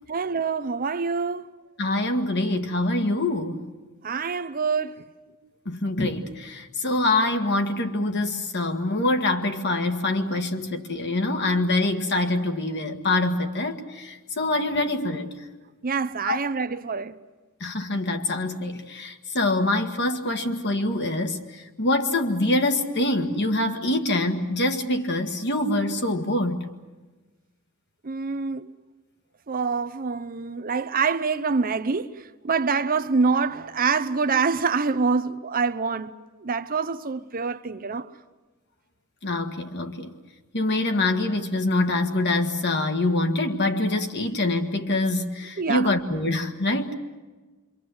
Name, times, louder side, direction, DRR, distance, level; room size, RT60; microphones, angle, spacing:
voice 1, 0.1-1.5 4.0-4.9 15.8-17.2 28.0-28.7 29.5-36.1 36.4-38.1 45.6-45.9, right 5 dB, 40° right, 0.7 m, -26 dB
voice 2, 1.8-3.7 5.7-15.3 16.2-16.4 17.6-26.6 39.2-40.1 40.5-46.9, left 2 dB, 50° left, 1.8 m, -25 dB
26.5 x 24.5 x 7.9 m
head